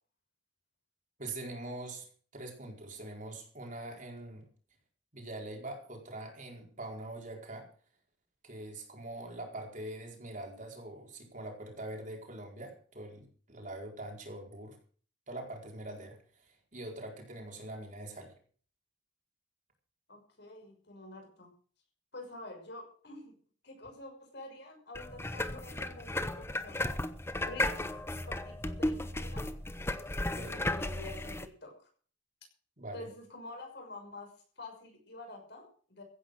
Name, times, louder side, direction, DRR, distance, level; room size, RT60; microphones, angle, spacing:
voice 1, 1.2-2.1 2.3-4.5 5.1-7.7 8.4-14.8 15.3-18.3 30.3-30.6 32.8-33.1, right 1 dB, 40° right, 2 dB, 4.5 m, -43 dB
voice 2, 20.1-21.5 22.1-23.3 23.6-26.8 27.4-27.8 28.2-29.5 30.3-31.9 32.9-36.0, left 2 dB, 60° left, 3 dB, 6.2 m, -48 dB
sound 1, 24.9-31.5, left 1 dB, 15° left, 1.0 m, -35 dB
15.5 x 9.9 x 6.6 m, 0.44 s
head